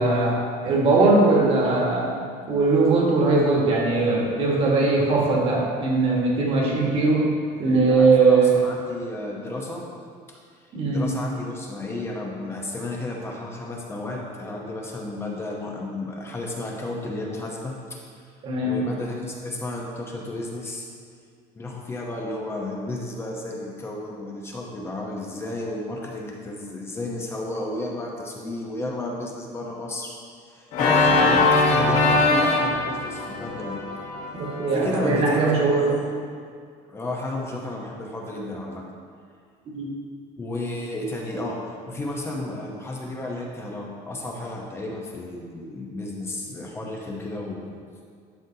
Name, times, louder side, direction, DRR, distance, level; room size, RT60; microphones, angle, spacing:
voice 1, 0.0-7.3 7.6-8.5 10.7-11.1 18.4-18.8 34.4-35.9 39.7-39.9, right 3 dB, 35° right, -2 dB, 1.6 m, -20 dB
voice 2, 7.9-9.9 10.9-18.0 18.6-20.9 21.5-30.1 30.5-33.8 34.7-36.1 36.9-38.8 40.4-47.7, left 2 dB, 15° left, -1 dB, 0.8 m, -32 dB
Organ, 30.7-35.6, left 3 dB, 55° left, 1.3 m, -22 dB
11.5 x 6.2 x 2.8 m, 2.2 s
cardioid pair, 165°, 16 cm